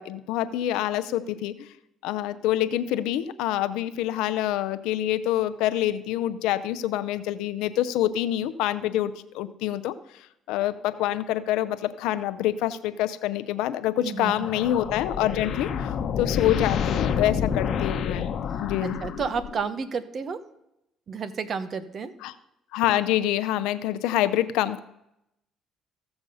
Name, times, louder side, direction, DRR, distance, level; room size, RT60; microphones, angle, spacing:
voice 1, 0.0-1.7 2.0-9.9 10.5-18.3 18.6-19.0 22.2-22.3 22.7-24.8, left 13 dB, 85° left, 11 dB, 0.5 m, -26 dB
voice 2, 14.0-14.3 18.8-20.4 21.1-22.1, right 5 dB, 45° right, 13 dB, 1.0 m, -31 dB
sound 1, 14.2-19.7, left 7 dB, 60° left, 1.0 m, -29 dB
14.5 x 6.9 x 5.5 m, 0.83 s
supercardioid pair, 85°, 0 cm